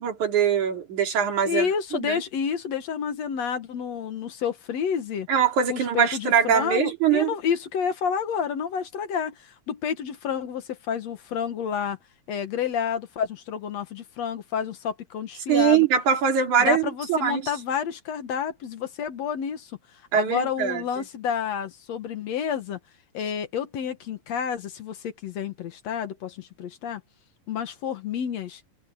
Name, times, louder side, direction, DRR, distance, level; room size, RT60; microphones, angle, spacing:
voice 1, 0.0-2.2 5.3-7.3 15.5-17.4 20.1-20.8, right 7 dB, 75° right, 4.4 m, -22 dB
voice 2, 1.5-5.3 5.7-12.0 12.3-15.9 16.6-19.7 20.1-22.8 23.1-27.0 27.5-28.6, left 7 dB, 65° left, 2.5 m, -29 dB
omnidirectional pair, 3.4 m